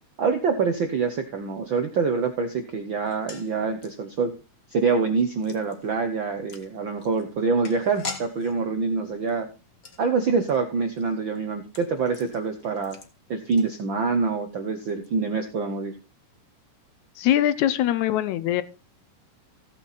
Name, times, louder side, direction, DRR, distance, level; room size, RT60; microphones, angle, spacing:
voice 1, 0.2-4.3 4.7-9.5 10.0-13.0 13.3-15.9, right 4 dB, 80° right, 6 dB, 1.0 m, -25 dB
sound 1, 3.0-14.2 14.5-14.6 14.9-15.1, left 4 dB, 45° left, 1.2 m, -44 dB
voice 2, 17.2-18.6, left 12 dB, 75° left, 15 dB, 1.9 m, -22 dB
15.5 x 7.8 x 4.1 m, 0.30 s
omnidirectional pair, 3.7 m